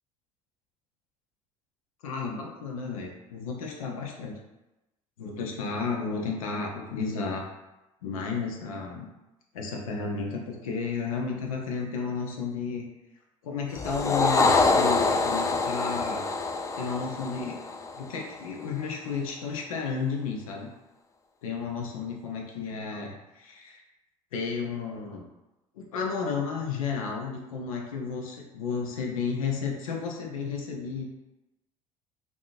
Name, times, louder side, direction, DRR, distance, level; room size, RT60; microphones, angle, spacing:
voice 1, 2.0-4.4 5.2-7.5 8.0-9.1 9.5-12.9 13.4-16.2 16.8-17.6 17.9-20.7 21.4-23.8 24.3-25.3 25.7-31.0, left 5 dB, 85° left, 0 dB, 0.7 m, -32 dB
sound 1, 13.7-18.3, left 3 dB, 20° left, 0.4 m, -25 dB
3.6 x 2.6 x 2.5 m, 0.99 s
hypercardioid pair, 65°, 17 cm